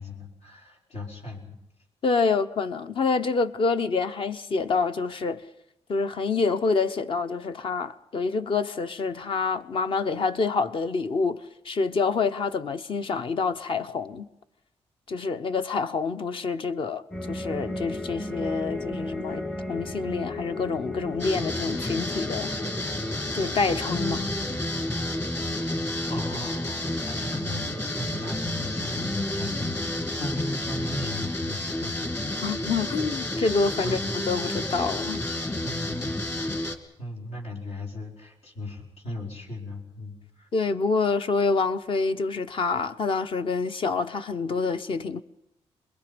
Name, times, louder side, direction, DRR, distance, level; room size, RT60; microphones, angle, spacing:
voice 1, 0.0-1.6 26.1-32.4 33.8-34.0 35.6-36.3 37.0-40.5, left 2 dB, 75° left, 5.0 m, -37 dB
voice 2, 2.0-5.4 5.9-14.3 15.1-22.5 23.3-24.3 32.4-35.2 40.5-45.2, left 4 dB, 50° left, 1.0 m, -27 dB
sound 1, 17.1-31.2, left 1 dB, 10° left, 0.8 m, -35 dB
sound 2, 21.2-36.8, left 1 dB, 25° left, 2.2 m, -31 dB
28.0 x 22.0 x 5.3 m
cardioid pair, 120°, 11 cm